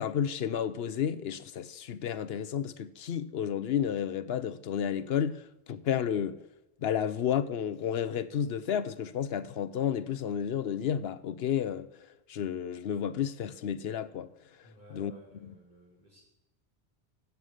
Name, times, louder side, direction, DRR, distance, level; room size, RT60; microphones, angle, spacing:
voice 1, 0.0-6.4 6.8-11.9 12.3-14.3 14.9-15.1, left 9 dB, 75° left, 0.9 m, -31 dB
voice 2, 14.6-16.2, left 1 dB, 50° right, 5.9 m, -55 dB
17.0 x 7.0 x 6.5 m
omnidirectional pair, 1.0 m